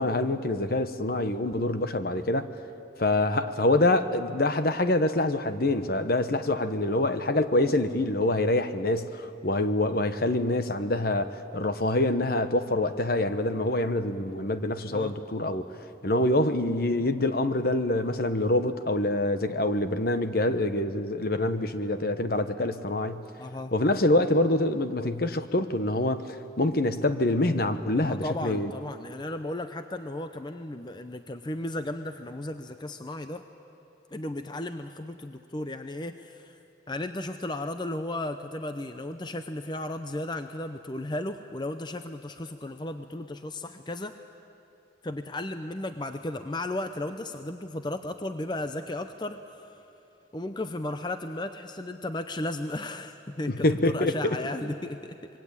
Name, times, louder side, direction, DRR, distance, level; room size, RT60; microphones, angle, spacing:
voice 1, 0.0-2.5 3.0-15.7 16.0-23.2 23.7-28.7 53.5-54.4, left 1 dB, 50° left, 10 dB, 1.1 m, -26 dB
voice 2, 23.4-23.7 28.0-33.4 34.1-36.6 36.9-44.2 45.0-49.8 50.3-55.2, left 1 dB, 25° left, 8 dB, 0.7 m, -35 dB
25.5 x 22.5 x 8.9 m, 2.7 s
head